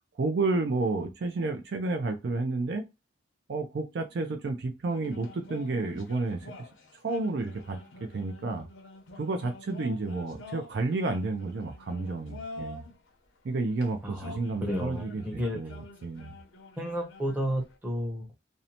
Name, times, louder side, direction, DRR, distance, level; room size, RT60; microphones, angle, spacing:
voice 1, 0.2-2.9 3.5-6.5 7.0-8.7 9.2-12.8 13.4-16.3, right 3 dB, 55° right, 6 dB, 0.4 m, -31 dB
sound 1, 4.9-13.0 13.7-17.8, left 2 dB, 75° left, 0.6 m, -47 dB
voice 2, 14.0-15.6 16.8-18.3, equal, 10° right, 0 dB, 0.7 m, -32 dB
2.6 x 2.0 x 2.8 m, 0.24 s
head